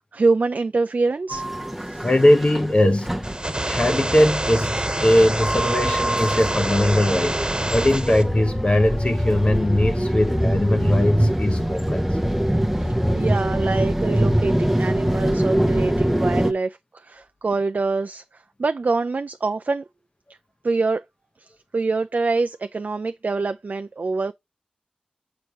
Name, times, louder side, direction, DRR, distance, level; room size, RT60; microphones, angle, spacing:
voice 1, 0.1-1.5 1.8-2.1 12.8-19.8 20.6-21.0 21.4-24.3, right 3 dB, 75° right, 0.3 m, -25 dB
sound 1, 1.3-16.5, equal, 5° right, 0.7 m, -24 dB
voice 2, 2.0-3.2 3.6-12.1, left 1 dB, 45° left, 0.9 m, -20 dB
sound 2, 3.2-8.2, right 1 dB, 30° right, 1.5 m, -26 dB
6.9 x 5.0 x 2.9 m
wide cardioid pair, 65°, 3 cm